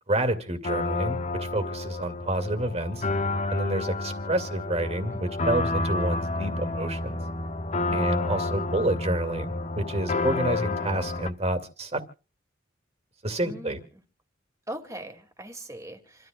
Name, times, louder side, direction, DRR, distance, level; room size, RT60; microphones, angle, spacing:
voice 1, 0.1-3.0 3.5-7.2 7.9-12.0 13.2-13.8, right 1 dB, 35° right, 2.3 m, -29 dB
sound 1, 0.6-11.3, left 2 dB, 40° left, 0.9 m, -30 dB
voice 2, 5.1-5.5 7.9-8.3 13.4-13.8 14.7-16.3, right 1 dB, 15° right, 2.4 m, -41 dB
28.0 x 13.5 x 2.4 m
head